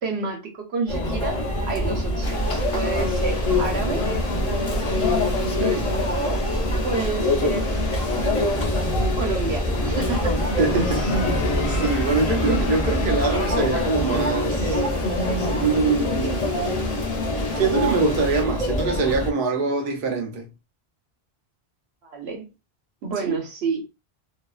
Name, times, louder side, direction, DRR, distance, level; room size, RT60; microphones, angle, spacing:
voice 1, 0.0-4.0 6.0-6.4 6.8-7.7 9.1-10.4 10.9-11.0 22.0-22.4 23.0-23.8, right 4 dB, 85° right, 1.0 m, -29 dB
Conversation / Chatter / Crowd, 0.9-19.3, left 1 dB, 35° left, 0.6 m, -24 dB
sound 1, 2.2-18.4, left 2 dB, 60° left, 1.0 m, -35 dB
sound 2, 9.6-16.3, left 6 dB, 90° left, 0.9 m, -36 dB
voice 2, 10.6-11.2 11.7-14.8 15.6-16.5 17.6-20.5 23.2-23.3, right 4 dB, 65° right, 0.7 m, -24 dB
2.6 x 2.2 x 2.3 m
omnidirectional pair, 1.0 m